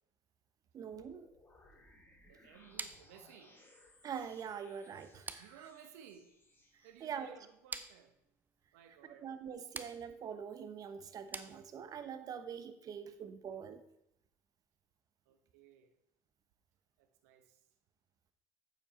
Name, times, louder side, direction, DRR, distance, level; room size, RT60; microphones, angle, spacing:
voice 1, 0.7-1.3 4.0-5.7 7.0-7.4 9.2-13.8, right 7 dB, 50° right, 11 dB, 1.0 m, -44 dB
sound 1, 0.9-6.9, left 1 dB, 25° left, 3.1 m, -64 dB
voice 2, 2.2-3.6 5.4-6.3 6.8-8.2 8.7-9.3 15.3-15.9 17.0-17.6, right 9 dB, 80° right, 8 dB, 1.0 m, -58 dB
sound 2, 2.8-12.1, right 3 dB, 20° right, 0.8 m, -50 dB
8.3 x 7.4 x 4.2 m, 0.80 s
hypercardioid pair, 75°, 8 cm